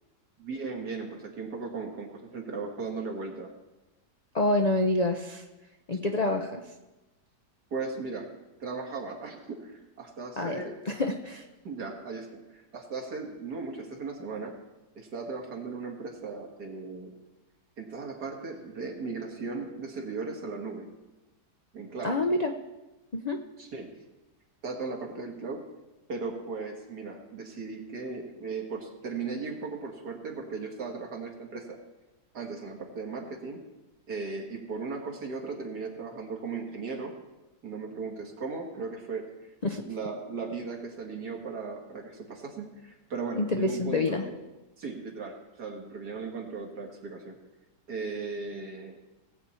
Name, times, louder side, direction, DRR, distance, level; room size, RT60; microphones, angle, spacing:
voice 1, 0.4-3.5 7.7-8.3 8.6-10.8 11.6-14.6 15.0-17.2 17.8-20.9 21.7-22.2 23.6-24.0 24.6-25.7 26.1-31.8 32.3-33.6 34.1-37.2 37.6-39.3 39.9-44.4 44.8-47.4 47.9-49.0, right 4 dB, 70° right, 1 dB, 2.4 m, -37 dB
voice 2, 4.3-5.5 5.9-6.7 10.4-11.5 22.0-22.5 23.1-23.4 39.6-39.8 43.3-44.3, left 2 dB, 55° left, 4 dB, 0.4 m, -27 dB
18.5 x 8.2 x 4.3 m, 1.1 s
omnidirectional pair, 1.8 m